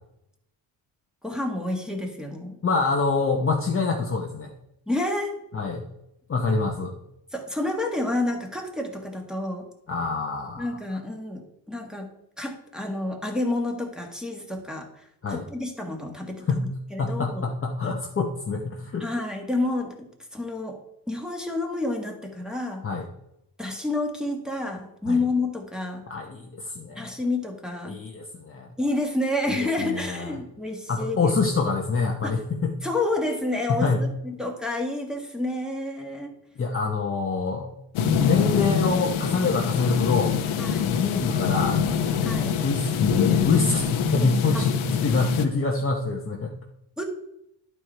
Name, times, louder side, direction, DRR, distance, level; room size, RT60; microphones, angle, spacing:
voice 1, 1.2-2.6 4.9-5.4 7.3-9.7 10.6-12.1 12.4-16.6 16.9-17.5 19.0-19.9 20.3-20.8 21.1-22.8 23.6-26.0 27.0-28.0 28.8-31.3 32.2-32.4 32.8-36.3 40.6-40.9 42.2-42.5 44.5-44.7 47.0-47.1, left 2 dB, ahead, 0 dB, 1.4 m, -29 dB
voice 2, 2.6-4.5 5.5-5.8 6.3-7.0 9.9-10.7 15.2-15.4 16.5-16.7 17.0-19.0 22.8-23.0 25.0-25.2 26.1-27.1 27.9-28.7 29.5-30.3 30.9-32.7 33.7-34.0 36.6-37.7 38.2-40.4 40.8-41.8 42.6-46.5, left 4 dB, 25° left, 0 dB, 0.8 m, -25 dB
sound 1, 38.0-45.5, left 7 dB, 85° left, 0.9 m, -24 dB
11.0 x 4.8 x 4.4 m, 0.79 s
cardioid pair, 130°, 47 cm